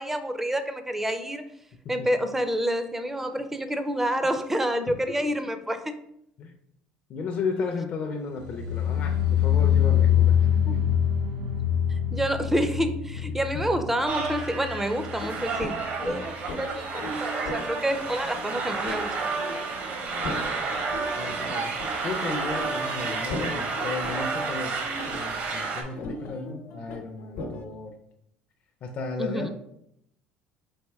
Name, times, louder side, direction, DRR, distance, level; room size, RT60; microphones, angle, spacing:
voice 1, 0.0-1.4 1.9-5.8 12.1-19.3 29.2-29.5, equal, 10° right, 9 dB, 0.4 m, -28 dB
voice 2, 7.1-10.8 13.5-13.7 20.1-20.4 21.2-21.7 22.0-27.9 28.8-29.5, left 4 dB, 45° left, 2 dB, 0.5 m, -34 dB
sound 1, 8.3-15.5 15.7-16.2 16.5-16.6, left 9 dB, 90° right, 0.8 m, -24 dB
sound 2, 14.1-25.8, right 4 dB, 55° right, 0.8 m, -31 dB
sound 3, 15.2-27.6, left 2 dB, 75° left, 0.8 m, -39 dB
4.2 x 2.8 x 3.4 m, 0.75 s
supercardioid pair, 110°, 3 cm